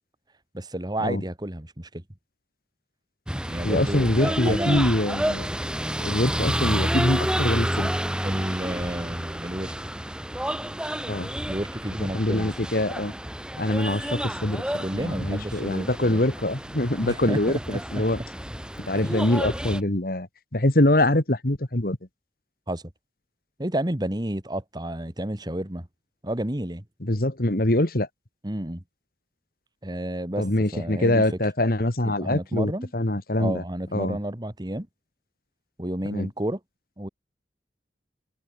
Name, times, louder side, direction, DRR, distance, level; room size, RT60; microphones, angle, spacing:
voice 1, 0.5-2.0 3.4-4.8 8.2-9.7 11.5-12.5 14.8-16.2 17.0-18.0 22.7-22.8 23.6-25.9 26.2-26.8 28.4-28.8 29.8-30.5 30.7-31.2 32.0-32.9 33.4-34.9 35.8-36.6 37.0-37.1, right 1 dB, 25° right, 1.6 m, -31 dB
sound 1, 3.3-19.8, equal, 5° right, 5.4 m, -30 dB
voice 2, 3.6-5.5 6.0-7.9 11.1-11.3 12.0-13.1 13.6-18.2 18.9-20.3 20.5-22.0 27.0-28.1 30.4-33.6 33.9-34.2 36.0-36.3, left 1 dB, 55° left, 2.2 m, -24 dB
head